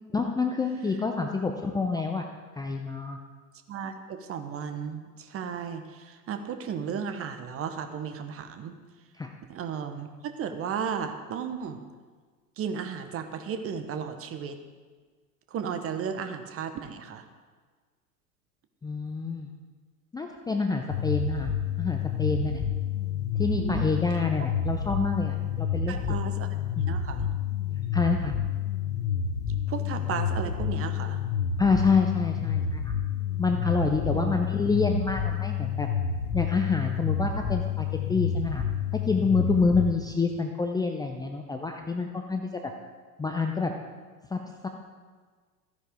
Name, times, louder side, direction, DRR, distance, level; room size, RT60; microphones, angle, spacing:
voice 1, 0.1-2.2 2.6-3.2 9.2-9.3 18.8-19.5 20.1-21.5 21.8-22.6 23.4-26.0 27.9-28.3 31.6-32.9 33.4-35.9 36.3-38.6 39.1-42.5 43.2-43.7 44.3-44.7, left 4 dB, 10° left, 3 dB, 0.6 m, -27 dB
voice 2, 3.7-8.7 9.5-11.8 12.6-14.6 15.5-17.2 23.6-23.9 25.9-26.5 26.9-27.3 29.7-31.2 34.1-34.4, right 7 dB, 30° right, 8 dB, 1.1 m, -34 dB
sound 1, 20.9-39.9, left 7 dB, 75° left, 1.0 m, -29 dB
14.5 x 9.6 x 3.7 m, 1.5 s
figure-of-eight pair, 80°, 46 cm